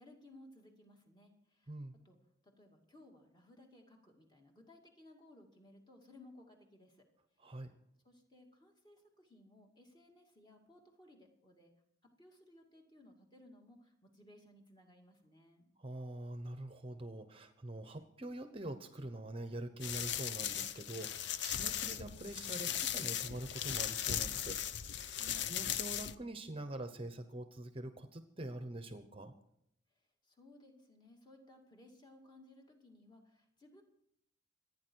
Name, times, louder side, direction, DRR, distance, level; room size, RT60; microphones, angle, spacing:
voice 1, 0.0-1.8 2.0-2.2 2.4-7.1 8.0-11.7 12.2-15.7 25.2-25.6 30.2-33.8, left 1 dB, 20° left, 1 dB, 2.3 m, -60 dB
voice 2, 7.4-7.7 15.8-25.2 25.5-29.3, right 1 dB, 30° right, 9 dB, 0.9 m, -45 dB
sound 1, 19.8-26.1, left 10 dB, 60° left, 0.6 m, -38 dB
26.0 x 9.7 x 4.6 m, 0.76 s
head